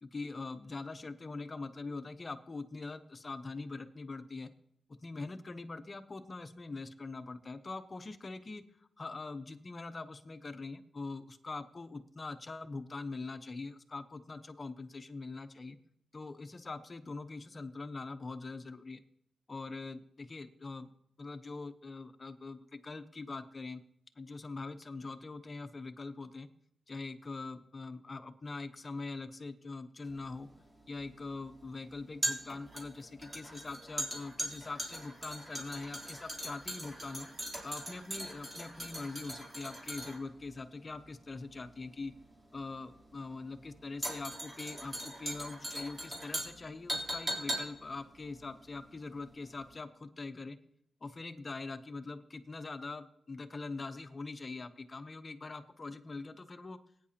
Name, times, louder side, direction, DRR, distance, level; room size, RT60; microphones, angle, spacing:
voice 1, 0.0-4.5 5.0-8.6 9.0-15.8 16.1-19.0 19.5-20.9 21.2-23.8 24.2-26.5 26.9-30.5 30.9-37.3 37.6-42.1 42.5-50.6 51.0-56.8, left 3 dB, 35° left, 9 dB, 0.9 m, -43 dB
sound 1, 30.1-49.3 49.6-49.7, right 1 dB, 25° right, 3.5 m, -40 dB
18.5 x 9.5 x 2.9 m, 0.72 s
cardioid pair, 90°, 0 cm